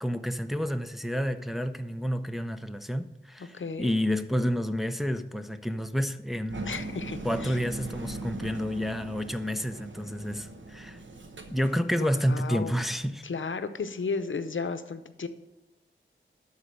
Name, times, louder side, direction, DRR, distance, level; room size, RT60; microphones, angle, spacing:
voice 1, 0.0-6.8 7.2-11.0 11.5-13.2, equal, ahead, 0.6 m, -30 dB
voice 2, 3.4-3.9 6.7-7.6 12.0-12.9 13.2-15.3, left 4 dB, 70° left, 0.7 m, -34 dB
Engine, 6.5-12.3, right 2 dB, 65° right, 1.0 m, -40 dB
12.0 x 4.0 x 6.5 m
wide cardioid pair, 60°, 21 cm